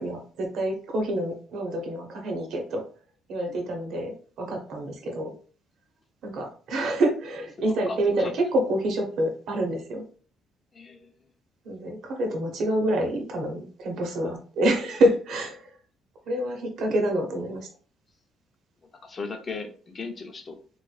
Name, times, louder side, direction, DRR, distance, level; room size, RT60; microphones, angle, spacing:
voice 1, 0.0-2.8 3.3-5.3 6.2-10.0 11.6-15.7 16.3-17.7, right 1 dB, 60° right, 3 dB, 1.0 m, -27 dB
voice 2, 7.6-8.3 10.7-11.1 19.0-20.6, left 4 dB, 25° left, 5 dB, 0.6 m, -37 dB
3.9 x 3.1 x 2.3 m, 0.41 s
cardioid pair, 170°, 0 cm